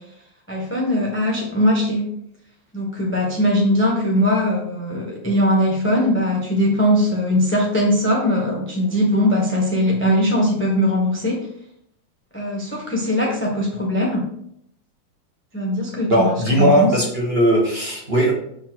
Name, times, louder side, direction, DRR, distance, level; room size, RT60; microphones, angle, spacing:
voice 1, 0.5-2.1 2.7-11.4 12.3-14.3 15.5-16.9, equal, 10° left, -2 dB, 0.8 m, -20 dB
voice 2, 16.1-18.3, equal, 35° right, -3 dB, 1.3 m, -18 dB
6.9 x 3.8 x 4.5 m, 0.72 s
omnidirectional pair, 2.2 m